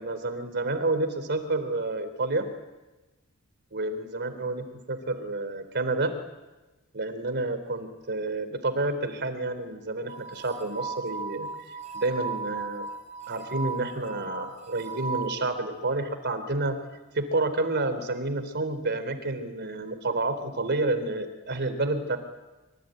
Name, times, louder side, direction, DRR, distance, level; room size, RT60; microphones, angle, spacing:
voice 1, 0.0-2.5 3.7-6.1 6.9-12.9 13.3-16.8 17.1-22.2, right 2 dB, 50° right, 10 dB, 3.6 m, -29 dB
sound 1, 10.1-15.4, right 4 dB, 35° right, 4.4 m, -36 dB
26.5 x 24.0 x 9.2 m, 1.1 s
head